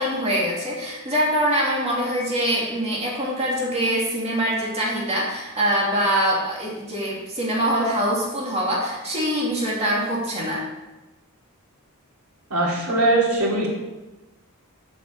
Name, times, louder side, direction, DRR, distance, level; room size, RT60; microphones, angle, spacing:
voice 1, 0.0-10.6, equal, 30° right, -4 dB, 2.7 m, -24 dB
voice 2, 12.5-13.7, right 2 dB, 80° right, -3 dB, 2.8 m, -20 dB
7.6 x 6.8 x 6.7 m, 1.1 s
head